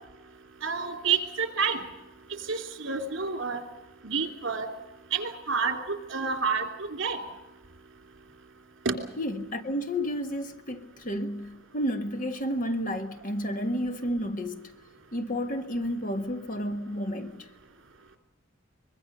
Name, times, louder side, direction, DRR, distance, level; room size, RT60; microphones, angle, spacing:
voice 1, 0.6-1.8 2.5-3.7 4.0-4.7 5.1-7.2 8.8-8.9, right 5 dB, 65° right, 2.9 m, -29 dB
voice 2, 9.1-14.8 15.1-17.5, equal, 40° left, 1.5 m, -31 dB
24.0 x 21.5 x 6.7 m
head